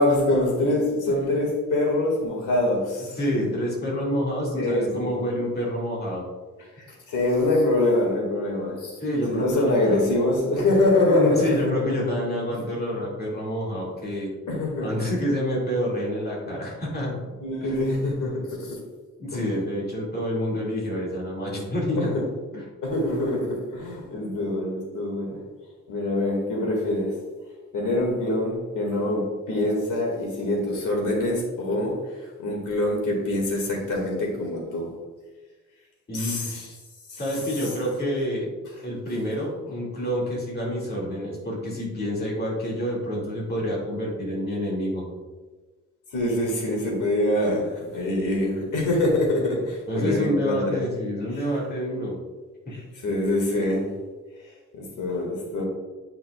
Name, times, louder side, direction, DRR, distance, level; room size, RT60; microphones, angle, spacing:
voice 1, 0.0-3.2 4.6-5.2 6.9-9.0 9.3-11.7 14.5-14.9 17.4-18.8 19.3-19.4 22.0-22.2 22.8-25.4 25.9-27.1 27.7-34.9 36.1-36.5 37.1-37.2 37.6-37.7 46.1-50.8 52.7-53.9 54.8-55.6, left 1 dB, 90° left, 0 dB, 2.0 m, -24 dB
voice 2, 3.1-6.2 9.0-10.0 11.1-14.3 14.8-17.2 17.6-17.8 19.2-22.1 22.5-22.6 36.1-36.8 37.2-38.5 38.8-45.1 49.9-52.2, equal, 30° left, -4 dB, 2.1 m, -28 dB
9.0 x 5.7 x 2.3 m, 1.3 s
wide cardioid pair, 145°, 30 cm